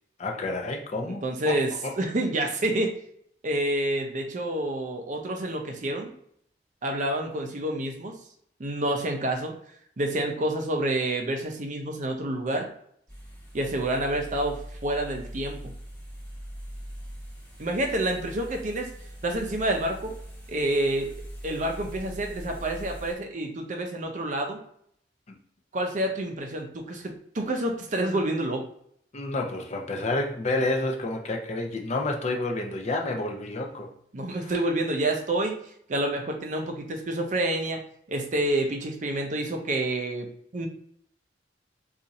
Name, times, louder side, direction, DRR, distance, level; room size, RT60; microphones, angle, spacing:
voice 1, 0.2-1.9 25.3-25.4 29.1-33.9 34.3-34.5, left 2 dB, 35° left, 2 dB, 0.5 m, -30 dB
voice 2, 1.0-1.7 2.0-3.0 3.4-6.1 6.8-8.2 8.6-9.5 10.0-12.7 13.5-15.7 17.6-18.9 19.2-20.1 20.5-21.1 21.4-24.6 25.7-28.6 34.1-35.6 35.9-37.8 38.1-40.7, right 1 dB, 45° right, 3 dB, 0.5 m, -28 dB
sound 1, 13.1-23.1, equal, 10° left, 1.0 m, -42 dB
2.7 x 2.4 x 4.0 m, 0.68 s
head